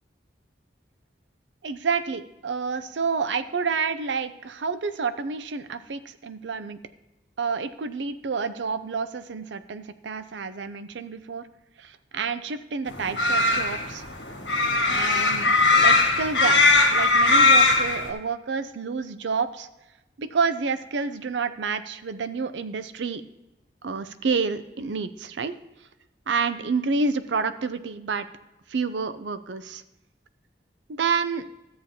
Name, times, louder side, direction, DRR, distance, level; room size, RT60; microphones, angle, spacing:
voice 1, 1.6-6.8 7.4-11.5 11.8-14.1 14.9-16.6 16.9-19.7 20.2-23.2 23.8-25.6 26.3-28.3 28.7-29.8 30.9-31.5, right 5 dB, 80° right, 12 dB, 0.5 m, -29 dB
sound 1, 12.9-18.1, left 3 dB, 80° left, 1.6 m, -19 dB
13.5 x 7.5 x 2.8 m, 0.97 s
head